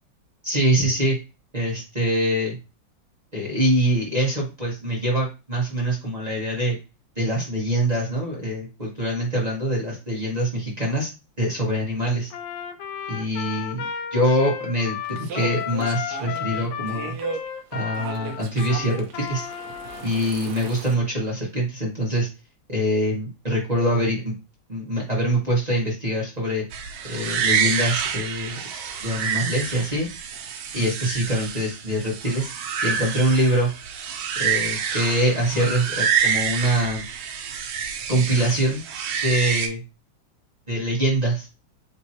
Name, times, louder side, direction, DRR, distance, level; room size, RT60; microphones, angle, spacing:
voice 1, 0.4-1.2 1.5-2.6 3.3-6.8 7.1-11.1 11.4-12.3 13.1-17.1 17.7-19.5 20.0-22.3 22.7-24.3 24.7-26.6 27.1-28.6 29.0-30.1 30.7-32.5 32.8-33.7 34.4-37.0 38.1-38.8 39.2-39.8 40.7-41.5, right 1 dB, 25° right, -5 dB, 1.1 m, -24 dB
Trumpet, 12.3-20.1, left 8 dB, 80° left, 1.4 m, -33 dB
sound 1, 15.0-21.0, right 5 dB, 65° right, 1.1 m, -36 dB
sound 2, 26.7-39.7, right 7 dB, 85° right, 1.5 m, -27 dB
5.3 x 3.0 x 2.8 m, 0.28 s
omnidirectional pair, 2.2 m